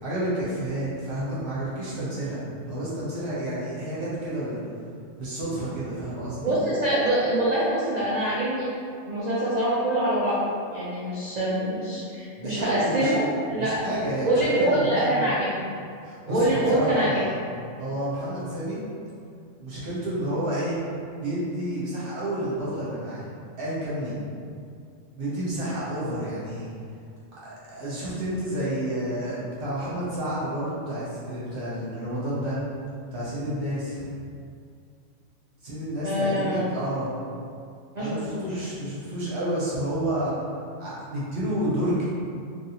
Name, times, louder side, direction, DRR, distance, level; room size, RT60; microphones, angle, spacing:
voice 1, 0.0-2.4 2.7-4.6 5.2-6.5 12.3-13.1 13.6-15.3 16.0-17.3 17.8-18.8 19.6-20.8 21.2-23.2 23.6-24.2 25.1-26.7 27.4-32.6 33.1-34.1 35.6-37.1 38.0-40.3 40.8-42.0, right 1 dB, 50° right, -9 dB, 0.9 m, -30 dB
voice 2, 6.4-8.7 9.1-10.4 10.7-13.7 14.3-15.7 16.3-17.2 36.0-36.6 37.9-38.6, right 1 dB, 85° right, -8 dB, 0.3 m, -25 dB
3.0 x 2.7 x 2.8 m, 2.3 s
omnidirectional pair, 1.4 m